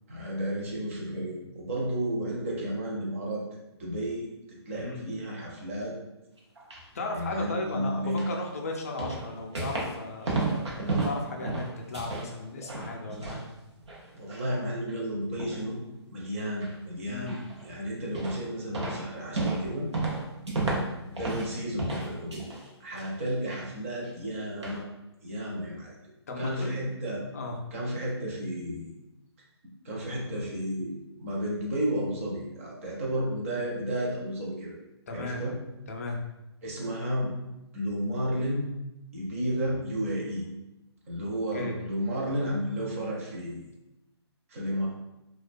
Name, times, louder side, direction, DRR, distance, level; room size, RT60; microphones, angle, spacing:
voice 1, 0.1-3.4 3.8-4.3 4.7-6.0 7.1-8.2 14.1-15.8 16.1-17.4 17.6-19.9 21.1-22.4 22.8-24.8 25.2-25.9 26.4-27.2 27.7-28.9 29.8-34.8 35.1-35.6 36.6-37.3 37.7-38.6 39.1-40.4 41.1-43.6 44.5-44.9, equal, 30° right, -3 dB, 0.5 m, -32 dB
voice 2, 4.7-5.1 6.9-13.4 17.1-17.4 26.3-26.8 27.3-27.6 35.1-35.4 35.9-36.2 41.5-41.8, left 2 dB, 35° left, 1 dB, 0.3 m, -36 dB
sound 1, 6.4-6.8 8.2-8.4 9.0-10.0 10.2-12.3 12.6-13.4 13.8-14.5 14.9-15.0 15.4-15.7 16.6-16.7 17.3-17.7 18.1-18.5 18.7-21.5 21.8-22.7 23.0-23.6 24.0-24.1 24.6-24.8, right 2 dB, 85° right, 0.7 m, -32 dB
2.4 x 2.2 x 2.5 m, 0.95 s
hypercardioid pair, 165°, 14 cm